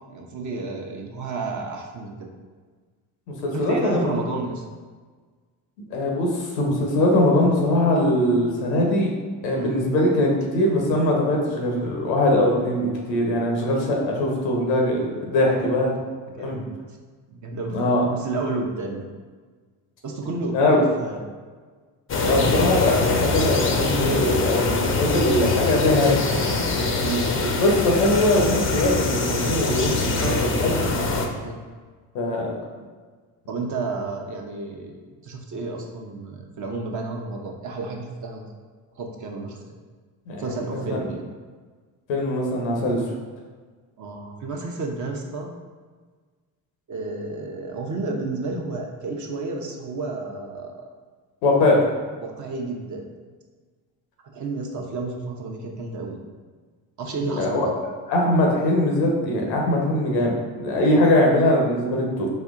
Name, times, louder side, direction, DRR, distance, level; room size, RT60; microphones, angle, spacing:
voice 1, 0.0-2.3 3.5-4.6 9.6-9.8 16.4-16.7 17.3-17.8 18.0-19.1 20.0-21.2 27.0-27.3 30.2-31.6 33.5-38.5 39.0-39.6 40.4-41.2 44.0-45.5 46.9-50.8 52.2-53.1 54.2-56.2 57.0-57.7, right 3 dB, 40° right, 1 dB, 0.7 m, -31 dB
voice 2, 3.3-4.2 5.9-9.1 9.4-15.9 16.4-16.6 17.7-18.0 20.5-20.8 22.2-26.9 27.4-30.8 32.1-32.5 40.3-41.0 42.1-43.0 51.4-51.8 57.2-57.7 58.1-62.3, left 1 dB, 90° left, 0 dB, 0.8 m, -21 dB
sound 1, 22.1-31.3, left 3 dB, 25° left, 0.5 m, -24 dB
4.3 x 2.7 x 2.4 m, 1.5 s
hypercardioid pair, 60°, 49 cm